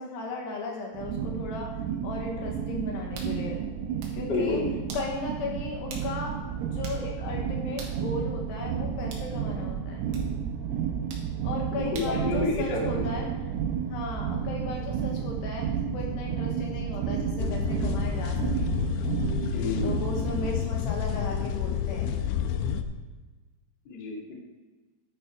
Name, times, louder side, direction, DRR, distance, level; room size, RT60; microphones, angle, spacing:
voice 1, 0.0-3.6 4.1-4.7 4.9-6.4 6.7-10.1 11.4-13.3 13.9-18.7 19.8-22.1, left 3 dB, 70° left, 0 dB, 3.1 m, -36 dB
sound 1, 0.9-20.5, right 7 dB, 90° right, 3.5 m, -31 dB
sound 2, 3.2-3.4 3.8-4.2 4.9-5.1 5.9-6.1 6.4-6.5 6.8-7.0 7.8-8.0 9.1-9.3 10.1-10.3 11.1-11.3 11.9-12.2, right 4 dB, 60° right, 3.2 m, -43 dB
voice 2, 4.3-4.7 11.7-12.8 13.1-13.2 19.5-19.9 23.8-24.3, left 3 dB, 40° left, -3 dB, 1.6 m, -29 dB
sound 3, 17.4-22.8, left 8 dB, 85° left, 2.8 m, -30 dB
11.5 x 9.6 x 4.6 m, 1.3 s
omnidirectional pair, 5.7 m